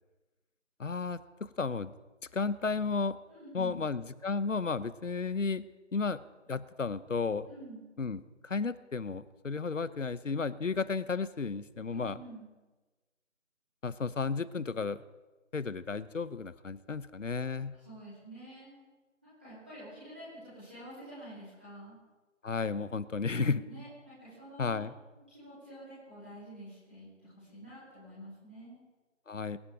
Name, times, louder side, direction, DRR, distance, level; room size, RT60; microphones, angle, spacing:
voice 1, 0.8-1.2 1.6-1.9 2.3-3.2 3.5-5.6 5.9-6.2 6.5-7.5 8.0-12.2 13.8-15.0 15.5-17.7 22.4-23.6 24.6-24.9 29.3-29.6, left 4 dB, 70° left, 16 dB, 0.9 m, -33 dB
voice 2, 3.3-3.8 7.5-7.8 11.9-12.5 17.7-18.8 19.2-21.9 23.3-24.8 25.3-28.8, right 1 dB, 10° right, -13 dB, 3.2 m, -48 dB
22.0 x 10.0 x 4.9 m, 1.2 s
figure-of-eight pair, 180°, 39 cm